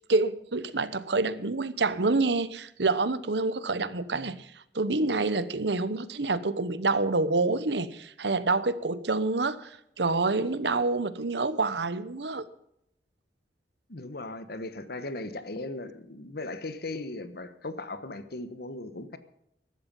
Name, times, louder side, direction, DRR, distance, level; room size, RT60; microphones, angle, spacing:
voice 1, 0.1-4.5 4.7-12.4, right 3 dB, 70° right, 1.0 m, -27 dB
voice 2, 13.9-19.2, left 2 dB, 60° left, 1.3 m, -38 dB
14.5 x 12.5 x 5.5 m
head